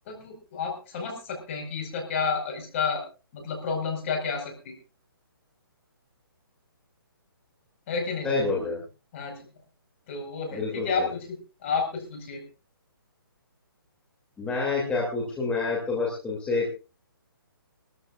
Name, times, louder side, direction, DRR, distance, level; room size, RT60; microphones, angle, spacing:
voice 1, 0.1-3.0 3.3-4.7 7.9-8.4 9.1-9.4 10.1-12.4, left 5 dB, 35° left, 3 dB, 4.9 m, -31 dB
voice 2, 8.2-8.8 10.5-11.1 14.4-16.7, left 3 dB, 10° left, -3 dB, 2.7 m, -28 dB
23.0 x 14.0 x 2.5 m, 0.31 s
hypercardioid pair, 155°, 12 cm